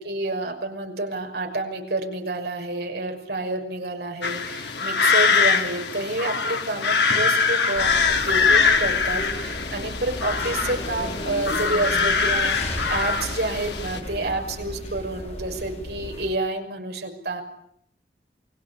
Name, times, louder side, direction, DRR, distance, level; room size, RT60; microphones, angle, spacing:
voice 1, 0.0-17.4, right 2 dB, 70° right, 3 dB, 6.1 m, -29 dB
sound 1, 4.2-14.0, left 5 dB, 80° left, 3.2 m, -23 dB
sound 2, 7.7-16.3, left 1 dB, 40° left, 4.6 m, -34 dB
28.5 x 22.0 x 8.6 m, 0.70 s
head